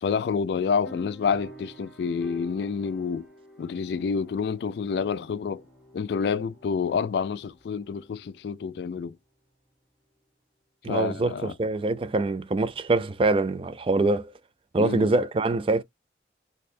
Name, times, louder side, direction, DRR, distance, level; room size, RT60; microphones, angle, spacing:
voice 1, 0.0-3.3 3.6-5.6 5.9-9.2 10.9-11.5 14.8-15.1, left 6 dB, 65° left, 0.3 m, -28 dB
sound 1, 0.8-8.9, right 1 dB, ahead, 1.3 m, -49 dB
voice 2, 10.8-14.3 14.7-15.8, right 2 dB, 30° right, 0.4 m, -24 dB
4.1 x 2.7 x 2.6 m
head